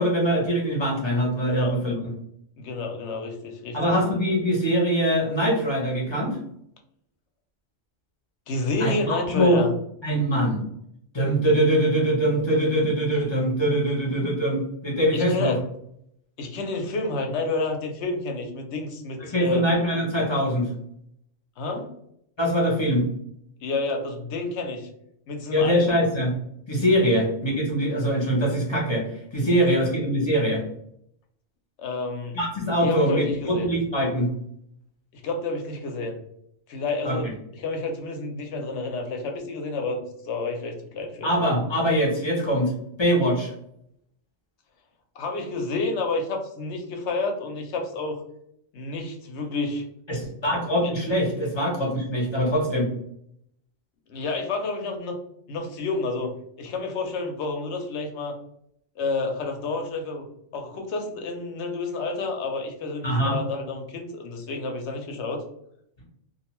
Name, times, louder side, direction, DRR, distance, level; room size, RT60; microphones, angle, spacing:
voice 1, 0.0-2.0 3.7-6.4 8.8-9.6 10.0-10.6 11.1-15.6 19.2-20.7 22.4-23.1 25.5-26.3 26.7-29.0 29.3-30.6 32.3-34.3 37.0-37.2 41.2-42.7 43.0-43.5 50.1-52.9 63.0-63.4, equal, 30° left, -2 dB, 0.5 m, -23 dB
voice 2, 2.6-3.9 8.5-9.7 15.1-15.6 16.4-19.6 21.6-21.9 23.6-24.9 25.3-26.0 31.8-32.4 32.8-33.7 35.1-36.2 36.7-41.3 45.1-48.2 48.7-49.8 54.1-55.2 55.5-58.3 59.0-60.3 60.5-65.4, left 3 dB, 65° left, 4 dB, 0.8 m, -29 dB
2.5 x 2.2 x 2.9 m, 0.73 s
omnidirectional pair, 1.4 m